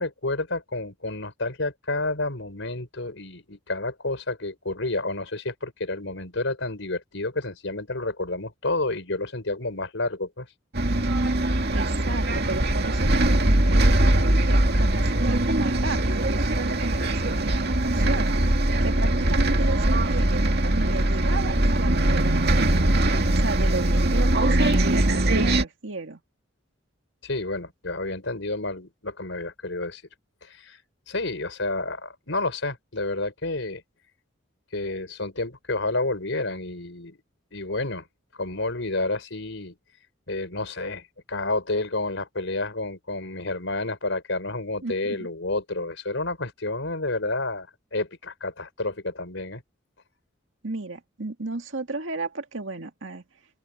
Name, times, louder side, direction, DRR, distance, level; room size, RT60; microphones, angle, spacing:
voice 1, 0.0-10.5 27.2-30.0 30.4-30.8 31.1-33.8 34.7-37.2 37.5-38.1 38.4-39.7 40.3-49.6, left 2 dB, 70° left, 5.1 m, -30 dB
Bus, 10.7-25.6, right 1 dB, 55° right, 2.3 m, -21 dB
voice 2, 11.7-18.4 18.8-22.9 23.3-26.2 44.8-45.2 50.6-53.2, right 3 dB, 75° right, 2.2 m, -33 dB
open air
head